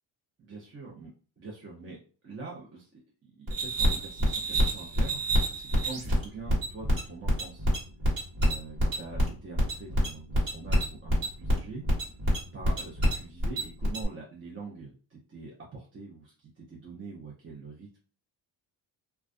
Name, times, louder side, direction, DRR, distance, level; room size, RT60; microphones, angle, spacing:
voice 1, 0.4-1.1 1.4-2.0 2.2-5.2 5.6-7.7 8.4-11.8 12.5-18.0, right 3 dB, 30° right, -3 dB, 0.6 m, -44 dB
sound 1, 3.5-14.1, equal, 50° right, 1.4 m, -26 dB
2.3 x 2.2 x 2.5 m, 0.40 s
cardioid pair, 100°, 45 cm